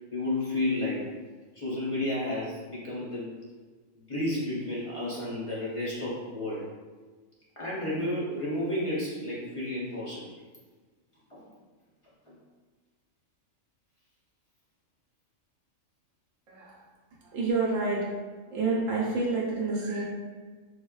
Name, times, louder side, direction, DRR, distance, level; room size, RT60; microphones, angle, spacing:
voice 1, 0.1-1.1 1.5-3.3 3.9-6.7 7.6-10.3 11.3-11.5 12.3-12.4, left 1 dB, 40° left, -7 dB, 0.5 m, -32 dB
voice 2, 16.5-16.8 17.2-18.1 18.5-20.0, right 3 dB, 75° right, -4 dB, 1.0 m, -28 dB
4.6 x 2.1 x 2.3 m, 1.4 s
omnidirectional pair, 1.4 m